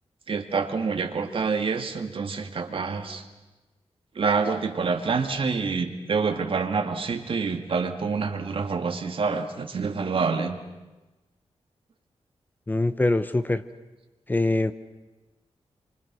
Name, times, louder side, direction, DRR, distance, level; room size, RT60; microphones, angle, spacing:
voice 1, 0.3-3.3 4.1-10.6, right 5 dB, 55° right, 6 dB, 2.2 m, -27 dB
voice 2, 12.7-13.6 14.3-14.7, left 2 dB, 15° left, 12 dB, 0.8 m, -23 dB
28.5 x 25.5 x 6.2 m, 1.1 s
wide cardioid pair, 135°, 11 cm